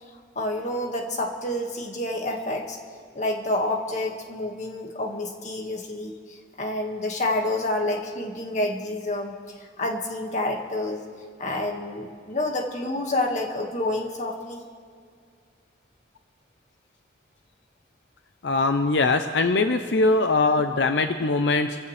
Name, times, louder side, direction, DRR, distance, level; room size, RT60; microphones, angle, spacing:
voice 1, 0.4-2.8 3.1-11.0 11.4-14.6, left 1 dB, 40° left, 2 dB, 1.9 m, -28 dB
voice 2, 18.4-21.8, left 3 dB, 80° left, 8 dB, 0.7 m, -22 dB
27.5 x 15.5 x 3.4 m, 2.1 s
head